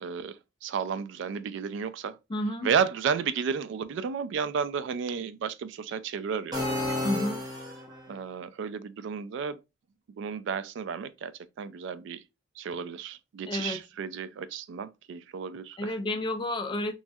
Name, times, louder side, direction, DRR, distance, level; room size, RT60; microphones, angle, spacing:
voice 1, 0.0-2.2 2.6-6.8 8.1-9.6 10.2-12.2 12.6-15.9, right 6 dB, 65° right, 0.3 m, -32 dB
voice 2, 2.3-2.7 7.0-7.4 13.5-13.8 15.8-16.9, left 1 dB, 25° left, 0.4 m, -30 dB
sound 1, 6.5-8.1, left 2 dB, 20° right, 0.8 m, -31 dB
3.1 x 2.3 x 2.6 m
head